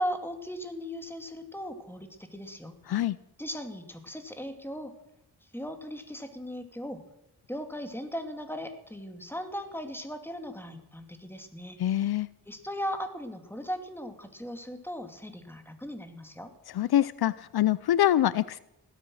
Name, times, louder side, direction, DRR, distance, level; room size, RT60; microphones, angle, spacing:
voice 1, 0.0-3.0 3.4-4.9 5.5-7.0 7.5-12.1 12.5-16.5, equal, 5° left, 7 dB, 2.7 m, -38 dB
voice 2, 11.8-12.3 16.7-18.6, left 12 dB, 75° left, 19 dB, 0.5 m, -25 dB
16.5 x 13.0 x 6.4 m, 0.82 s
cardioid pair, 50°, 39 cm